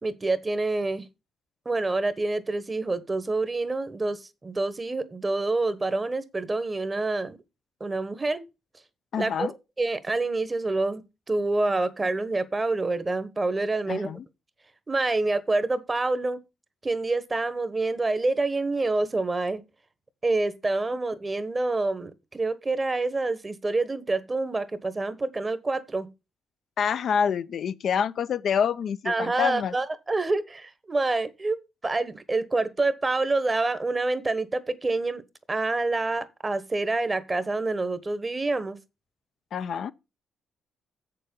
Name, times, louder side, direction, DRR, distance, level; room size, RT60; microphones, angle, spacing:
voice 1, 0.0-1.1 1.6-7.4 7.8-8.4 9.2-11.0 11.3-14.1 14.9-16.4 16.8-19.6 20.2-26.1 29.1-35.2 35.5-38.8, right 2 dB, 25° right, 1.1 m, -27 dB
voice 2, 9.1-9.5 13.9-14.2 26.8-29.7 39.5-39.9, left 7 dB, 60° left, 0.5 m, -27 dB
7.5 x 6.9 x 5.2 m
cardioid pair, 90°, 0 cm